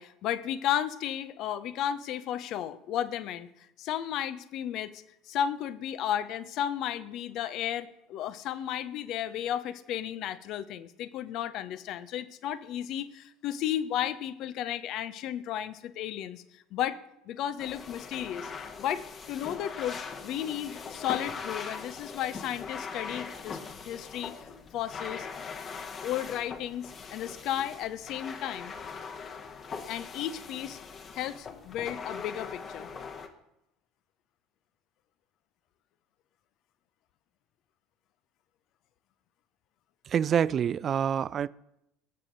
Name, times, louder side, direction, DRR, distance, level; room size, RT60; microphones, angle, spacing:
voice 1, 0.0-17.0 17.3-18.5 18.8-23.6 23.8-25.3 26.0-28.7 29.9-30.8 31.1-32.9, left 10 dB, 50° left, 0.7 m, -34 dB
sound 1, 17.6-33.3, left 5 dB, 35° left, 1.3 m, -41 dB
voice 2, 40.1-41.5, right 8 dB, 40° right, 0.3 m, -26 dB
19.0 x 7.5 x 4.0 m
figure-of-eight pair, 65°, 0 cm